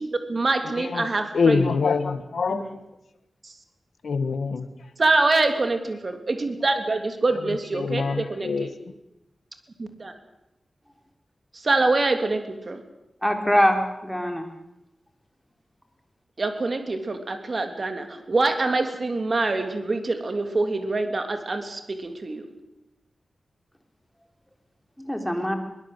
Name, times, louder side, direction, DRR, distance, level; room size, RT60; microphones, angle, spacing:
voice 1, 0.0-1.6 2.5-2.7 5.0-8.7 10.0-10.1 11.6-12.8 16.4-22.4, right 3 dB, 45° right, 6 dB, 3.3 m, -25 dB
voice 2, 0.6-2.6 4.0-4.7 7.3-8.7, left 4 dB, 80° left, 10 dB, 1.6 m, -25 dB
voice 3, 13.2-14.5 25.0-25.6, equal, 5° left, 4 dB, 3.4 m, -23 dB
23.0 x 20.0 x 8.1 m, 0.90 s
wide cardioid pair, 110°, 0 cm